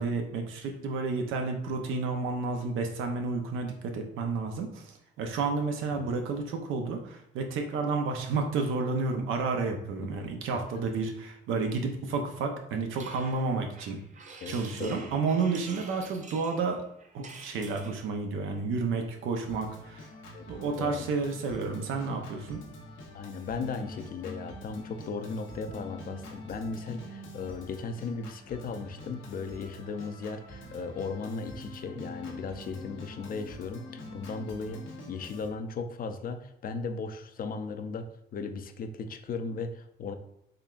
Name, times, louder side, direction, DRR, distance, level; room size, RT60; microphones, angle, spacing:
voice 1, 0.0-14.0 14.5-16.8 17.1-20.1 20.5-22.6, right 4 dB, 90° right, 4 dB, 0.6 m, -31 dB
sound 1, 13.0-18.1, right 4 dB, 40° right, 0.5 m, -48 dB
voice 2, 14.4-15.1 20.3-20.5 20.8-21.1 23.1-34.8 35.1-40.2, left 4 dB, 45° left, 8 dB, 0.4 m, -37 dB
Organ, 19.5-35.5, left 1 dB, 85° left, 0.8 m, -46 dB
3.8 x 3.3 x 2.4 m, 0.77 s
cardioid pair, 90°, 20 cm